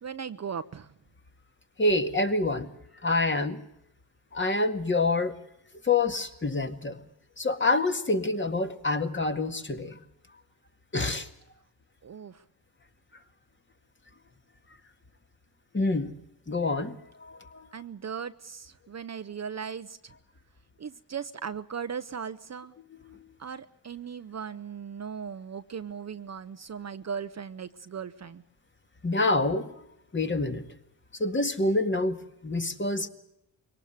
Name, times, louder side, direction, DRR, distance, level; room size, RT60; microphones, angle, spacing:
voice 1, 0.0-0.9 12.0-12.4 17.7-20.1 20.8-22.7 23.4-28.4, right 7 dB, 35° right, 12 dB, 0.8 m, -38 dB
voice 2, 1.8-2.7 3.0-3.6 4.3-5.4 5.8-7.0 7.4-10.0 10.9-11.3 15.7-16.1 16.5-17.7 23.0-23.2 29.0-29.8 30.1-30.6 31.2-33.1, left 2 dB, 25° left, 7 dB, 1.9 m, -27 dB
23.0 x 18.5 x 8.0 m, 0.79 s
cardioid pair, 75°, 44 cm